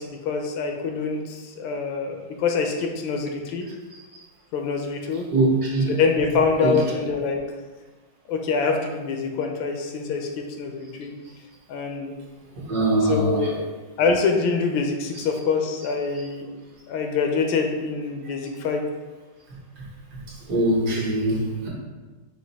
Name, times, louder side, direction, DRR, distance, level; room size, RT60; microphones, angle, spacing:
voice 1, 0.0-3.6 4.5-5.3 5.9-7.4 8.3-11.1 11.7-12.1 13.0-13.7 14.0-16.5 16.9-18.8, left 4 dB, 85° left, 3 dB, 1.4 m, -25 dB
voice 2, 5.3-5.9 6.6-6.7 12.7-13.4 20.5-21.7, right 2 dB, 60° right, -3 dB, 1.4 m, -22 dB
5.0 x 2.5 x 4.0 m, 1.2 s
omnidirectional pair, 2.1 m